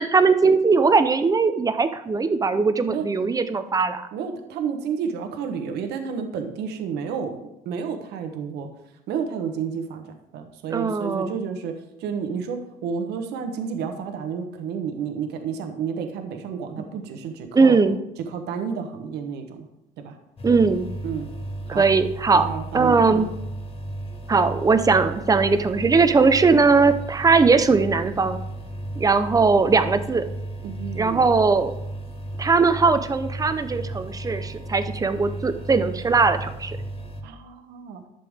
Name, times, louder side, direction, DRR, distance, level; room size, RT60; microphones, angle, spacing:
voice 1, 0.0-4.0 10.7-11.3 17.5-18.0 20.4-20.9 21.7-22.5 22.7-23.3 24.3-28.4 29.0-30.2 30.9-31.7 32.4-36.8, right 4 dB, 20° right, 10 dB, 0.7 m, -19 dB
voice 2, 4.1-8.7 9.1-10.0 10.3-11.7 12.0-17.8 18.3-19.7 20.0-20.2 21.0-21.3 21.7-21.8 22.3-23.2 30.6-31.3 37.2-38.0, right 6 dB, 80° right, 5 dB, 1.2 m, -31 dB
sound 1, 20.4-37.2, right 1 dB, 35° left, 1.5 m, -34 dB
11.5 x 6.9 x 3.6 m, 0.86 s
cardioid pair, 110°, 17 cm